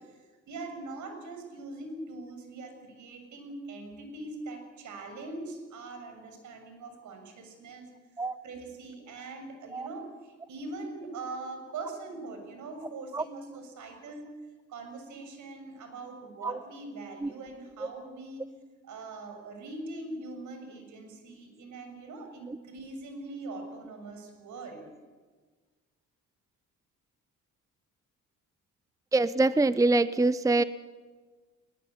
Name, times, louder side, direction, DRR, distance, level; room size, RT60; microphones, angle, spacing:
voice 1, 0.0-7.9 8.4-14.3 14.7-18.4 18.8-24.8, right 2 dB, 75° right, 5 dB, 6.8 m, -42 dB
voice 2, 29.1-30.6, right 2 dB, 10° right, 16 dB, 0.7 m, -24 dB
21.0 x 20.5 x 9.9 m, 1.4 s
cardioid pair, 90°, 30 cm